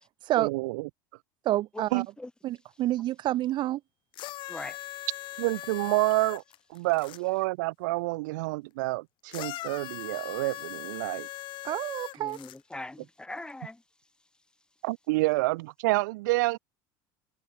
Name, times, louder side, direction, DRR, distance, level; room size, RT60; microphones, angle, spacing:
voice 1, 0.4-0.8 1.9-2.1 5.4-6.4 6.7-11.3 14.8-16.6, right 22 dB, 80° right, 0.8 m, -28 dB
voice 2, 1.4-2.0 2.4-3.8 11.6-12.4, right 14 dB, 50° right, 1.3 m, -28 dB
sound 1, 4.1-7.2 9.3-12.6 13.5-13.6, left 16 dB, 55° left, 4.8 m, -40 dB
voice 3, 12.2-13.8, left 2 dB, 10° left, 7.4 m, -41 dB
supercardioid pair, 105°, 10 cm